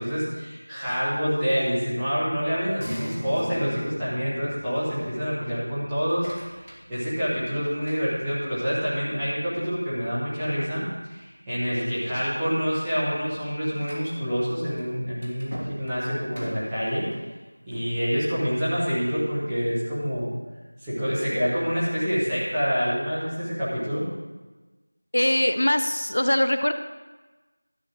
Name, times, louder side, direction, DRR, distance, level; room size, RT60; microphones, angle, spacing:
voice 1, 0.0-6.3 6.9-17.1 17.7-20.3 20.8-24.1, equal, 5° right, -14 dB, 1.2 m, -27 dB
sound 1, 2.8-9.8 10.2-10.3, equal, 20° left, 2.7 m, -41 dB
sound 2, 5.9-8.7 9.2-9.7 10.1-10.2 10.7-10.8 11.5-11.8 12.1-18.0, equal, 50° right, 2.8 m, -44 dB
voice 2, 25.1-26.7, left 1 dB, 40° left, 9 dB, 0.4 m, -22 dB
12.5 x 5.5 x 6.5 m, 1.2 s
figure-of-eight pair, 175°, 0 cm